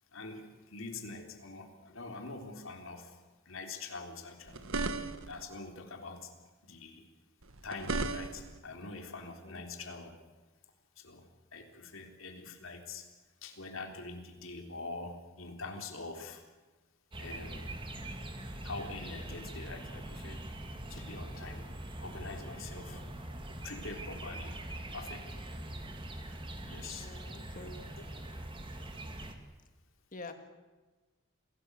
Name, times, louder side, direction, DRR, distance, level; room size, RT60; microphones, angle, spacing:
voice 1, 0.1-3.2 3.5-4.6 5.2-6.3 6.6-7.1 7.6-10.1 11.0-11.3 11.5-13.1 13.4-16.4 17.2-17.8 18.6-20.5 20.9-21.7 22.0-23.0 23.6-24.6 24.9-25.4 26.6-27.1 27.6-28.2, left 3 dB, 70° left, 4 dB, 3.7 m, -44 dB
sound 1, 4.5-5.4 7.4-8.6, right 3 dB, 75° right, 1.5 m, -35 dB
sound 2, 17.1-29.3, right 1 dB, 25° right, 2.4 m, -43 dB
voice 2, 27.0-27.8 30.1-30.3, left 3 dB, 40° left, 7 dB, 2.2 m, -47 dB
27.0 x 18.5 x 8.2 m, 1.2 s
head